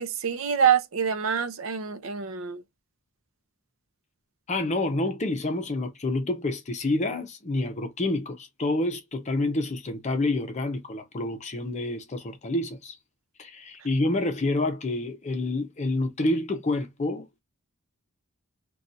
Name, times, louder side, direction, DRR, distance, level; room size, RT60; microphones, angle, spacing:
voice 1, 0.0-2.6, right 7 dB, 65° right, 0.5 m, -26 dB
voice 2, 4.5-12.9 13.4-17.4, left 2 dB, 35° left, 0.6 m, -28 dB
2.5 x 2.3 x 4.0 m
head